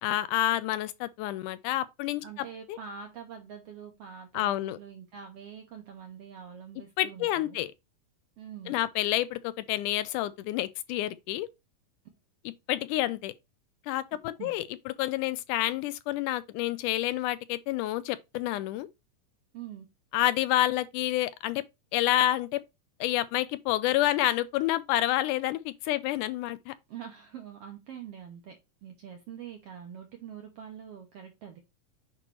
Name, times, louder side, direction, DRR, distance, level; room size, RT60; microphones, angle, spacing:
voice 1, 0.0-2.2 2.7-2.8 4.3-4.8 7.0-7.7 8.7-11.5 12.7-13.3 13.9-18.9 20.1-21.6 21.9-22.6 23.0-26.7, left 15 dB, 80° left, 2.0 m, -28 dB
voice 2, 2.2-7.6 8.4-8.8 14.4-14.5 19.5-19.9 26.9-31.6, right 8 dB, 75° right, 1.4 m, -44 dB
8.5 x 3.1 x 4.6 m
omnidirectional pair, 3.7 m